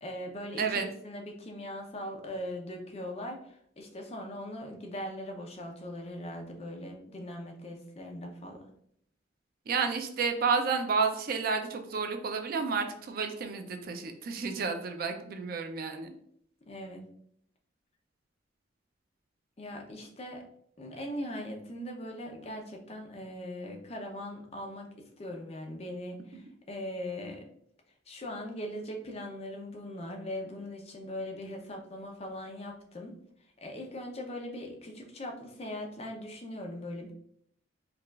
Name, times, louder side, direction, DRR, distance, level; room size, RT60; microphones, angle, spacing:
voice 1, 0.0-8.6 16.7-17.1 19.6-20.4 20.8-27.5 28.1-33.2 33.6-37.1, left 1 dB, 35° left, 2 dB, 0.6 m, -40 dB
voice 2, 0.6-0.9 9.7-16.1, right 5 dB, 50° right, 6 dB, 0.4 m, -31 dB
4.7 x 2.4 x 2.3 m, 0.68 s
head